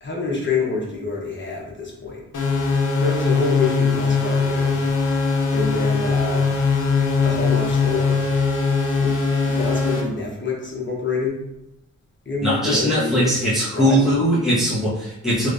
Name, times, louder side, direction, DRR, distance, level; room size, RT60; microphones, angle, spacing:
voice 1, 0.0-2.2 3.0-4.8 5.5-6.5 7.2-8.2 9.0-11.4 12.2-14.2, left 3 dB, 40° left, -3 dB, 1.2 m, -27 dB
sound 1, 2.3-10.0, left 4 dB, 80° left, 0.8 m, -20 dB
voice 2, 12.4-15.5, equal, ahead, -9 dB, 1.4 m, -20 dB
3.2 x 3.1 x 2.6 m, 0.84 s
cardioid pair, 65°, 31 cm